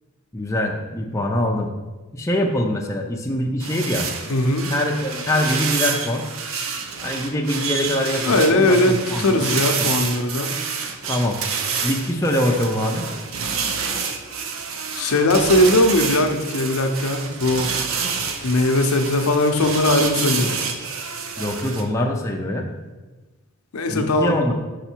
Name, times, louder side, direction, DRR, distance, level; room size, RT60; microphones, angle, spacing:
voice 1, 0.3-1.7 2.1-4.1 4.7-6.3 7.0-9.5 9.8-9.9 11.1-11.4 11.8-13.0 21.4-22.7 23.9-24.5, left 1 dB, 15° left, 0 dB, 0.4 m, -23 dB
sound 1, 3.6-21.8, right 5 dB, 65° right, 0.6 m, -28 dB
voice 2, 4.3-4.7 8.2-10.5 14.9-17.7 18.4-20.6 23.7-24.3, left 1 dB, 85° left, 6 dB, 0.6 m, -19 dB
5.5 x 4.9 x 4.4 m, 1.2 s
head